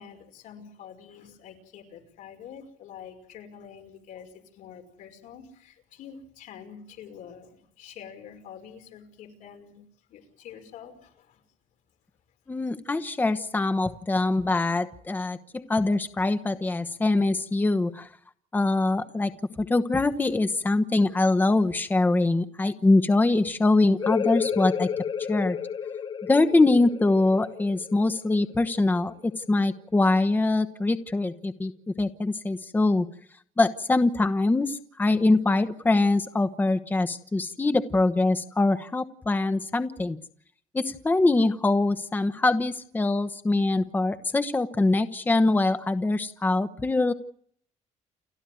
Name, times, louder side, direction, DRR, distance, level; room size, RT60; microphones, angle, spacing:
voice 1, 0.0-9.8 10.1-11.4, left 8 dB, 85° left, 5 dB, 5.5 m, -46 dB
voice 2, 12.5-18.1 18.5-19.3 19.6-24.9 25.3-25.6 26.2-33.1 33.6-40.2 40.7-47.1, left 2 dB, 15° left, 11 dB, 1.1 m, -23 dB
sound 1, 24.0-29.4, left 7 dB, 35° left, 0.9 m, -32 dB
29.5 x 12.0 x 9.3 m, 0.64 s
cardioid pair, 140°, 13 cm